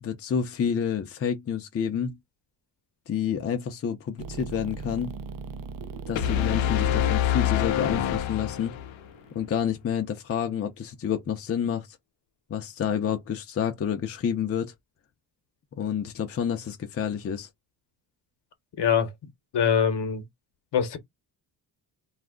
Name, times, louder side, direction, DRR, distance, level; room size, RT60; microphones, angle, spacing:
voice 1, 0.0-2.2 3.1-5.1 6.1-8.7 9.3-12.0 12.5-14.7 15.8-17.5, left 8 dB, 30° left, 0.5 m, -29 dB
sound 1, 4.2-9.3, right 5 dB, 50° right, 0.5 m, -39 dB
sound 2, 6.2-9.1, left 11 dB, 85° left, 0.6 m, -25 dB
voice 2, 18.8-19.1 19.5-20.2 20.7-21.0, left 7 dB, 60° left, 1.0 m, -23 dB
2.4 x 2.0 x 3.5 m
cardioid pair, 95°, 45 cm